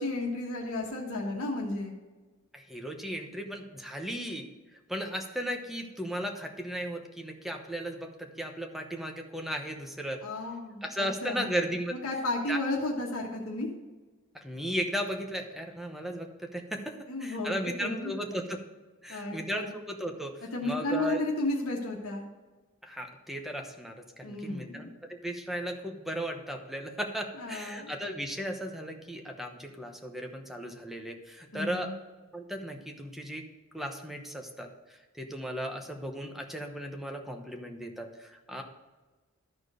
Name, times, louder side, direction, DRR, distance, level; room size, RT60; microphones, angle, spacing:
voice 1, 0.0-1.9 10.2-11.5 12.0-13.7 17.1-18.1 19.1-19.7 20.5-22.3 24.2-24.9 27.3-27.9 31.5-31.9, left 2 dB, 70° left, -1 dB, 1.4 m, -33 dB
voice 2, 2.5-4.5 4.9-10.2 10.8-11.9 12.5-12.6 14.4-16.9 17.2-18.6 19.0-20.3 20.6-21.2 22.8-31.9 32.3-33.4 33.7-38.6, equal, ahead, 3 dB, 0.9 m, -36 dB
13.0 x 4.5 x 5.0 m, 1.2 s
head